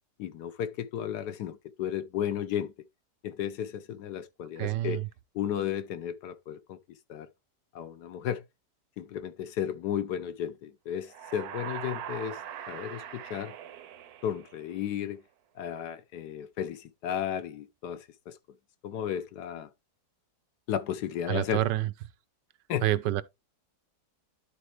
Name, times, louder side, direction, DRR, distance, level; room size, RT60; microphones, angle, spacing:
voice 1, 0.2-2.7 3.2-5.0 5.3-7.3 7.7-8.4 9.0-12.4 12.7-13.5 14.2-15.2 15.6-18.4 18.8-19.7 20.7-21.6 22.7-22.8, left 9 dB, 70° left, 1.3 m, -34 dB
voice 2, 4.6-5.1 21.3-21.9 22.8-23.2, right 14 dB, 85° right, 1.3 m, -27 dB
sound 1, 11.0-14.9, right 10 dB, 70° right, 1.1 m, -41 dB
12.0 x 4.2 x 3.2 m
omnidirectional pair, 1.8 m